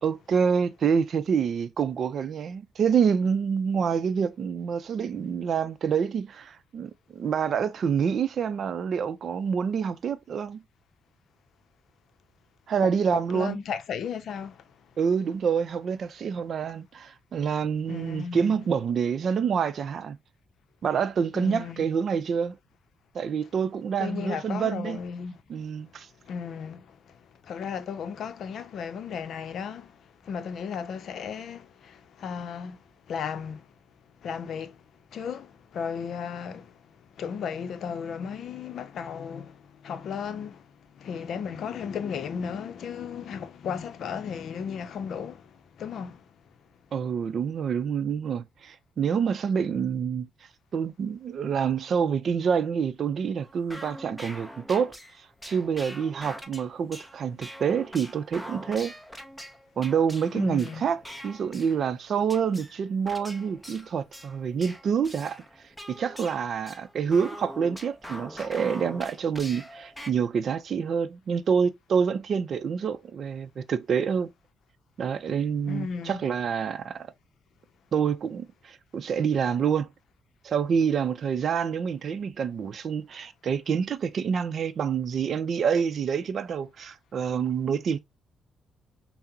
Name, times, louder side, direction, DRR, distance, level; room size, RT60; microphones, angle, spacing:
voice 1, 0.0-10.6 12.7-13.6 15.0-20.2 20.8-22.6 23.1-25.0 25.5-26.1 46.9-50.3 50.7-54.9 55.5-58.9 59.8-65.4 65.9-74.3 75.0-77.1 77.9-79.9 80.4-88.0, right 7 dB, 55° right, 0.5 m, -27 dB
voice 2, 12.8-14.6 17.9-18.7 21.3-21.9 24.0-25.4 26.3-32.8 33.1-33.7 34.2-34.8 35.1-36.8 37.2-40.7 40.9-46.2 60.3-60.8 75.7-76.2, left 7 dB, 65° left, 0.6 m, -35 dB
sound 1, 53.4-62.0 62.3-70.1, equal, ahead, 0.6 m, -44 dB
5.7 x 2.1 x 2.7 m
cardioid pair, 90°, 0 cm